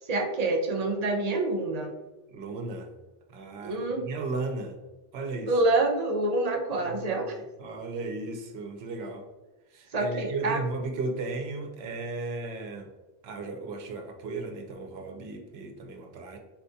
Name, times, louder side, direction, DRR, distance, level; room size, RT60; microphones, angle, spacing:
voice 1, 0.1-1.9 3.6-4.1 5.5-7.3 9.9-10.6, right 2 dB, 50° right, 2 dB, 0.6 m, -27 dB
voice 2, 2.3-2.9 3.3-4.8 5.1-5.5 6.7-9.2 9.7-12.9 13.2-16.4, right 3 dB, 85° right, 3 dB, 0.9 m, -35 dB
4.2 x 2.3 x 2.7 m, 1.1 s
omnidirectional pair, 1.0 m